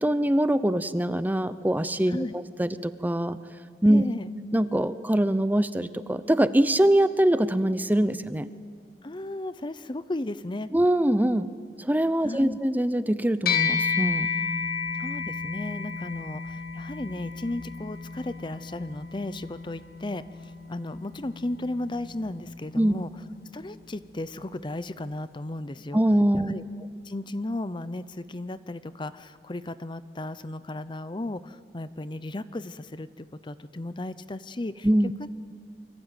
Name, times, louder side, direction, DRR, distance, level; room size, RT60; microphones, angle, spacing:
voice 1, 0.0-3.4 3.8-4.0 4.5-8.5 10.7-11.5 11.8-14.3 22.7-23.0 25.9-26.5 34.8-35.1, right 1 dB, 10° right, 13 dB, 0.6 m, -23 dB
voice 2, 3.9-4.3 9.0-10.7 12.2-12.6 14.9-23.1 23.5-26.0 26.3-26.6 27.0-34.9 35.2-35.3, left 1 dB, 25° left, 14 dB, 0.7 m, -35 dB
sound 1, 13.5-23.1, left 6 dB, 60° left, 1.9 m, -32 dB
27.5 x 24.0 x 9.1 m, 2.2 s
head